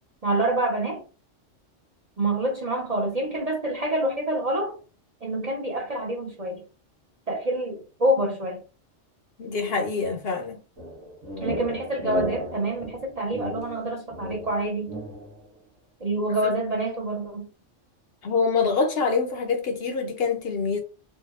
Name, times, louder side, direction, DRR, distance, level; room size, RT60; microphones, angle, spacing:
voice 1, 0.2-1.0 2.2-4.8 5.2-6.6 7.3-8.6 11.4-14.9 16.0-17.5, right 1 dB, 40° right, 0.6 m, -27 dB
voice 2, 9.4-10.6 16.4-16.5 18.2-20.8, left 5 dB, 60° left, 0.8 m, -25 dB
sound 1, 10.8-15.4, right 1 dB, 85° right, 1.3 m, -34 dB
3.8 x 2.2 x 2.4 m
omnidirectional pair, 1.2 m